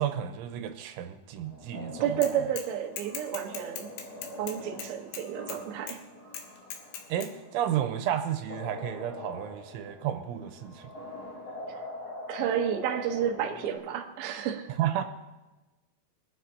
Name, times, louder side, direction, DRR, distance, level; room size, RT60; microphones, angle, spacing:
voice 1, 0.0-2.4 7.1-10.9 14.8-15.0, right 10 dB, 90° right, 7 dB, 3.2 m, -32 dB
sound 1, 1.4-13.8, left 2 dB, 20° left, 4.2 m, -44 dB
voice 2, 2.0-3.9 4.4-6.0 12.3-14.8, right 9 dB, 70° right, 2 dB, 2.6 m, -31 dB
Bicycle / Mechanisms, 2.2-2.7 3.0-5.6 5.9-6.0 6.3-7.3, left 7 dB, 85° left, 3.7 m, -39 dB
23.0 x 12.0 x 2.8 m, 1.1 s
omnidirectional pair, 5.4 m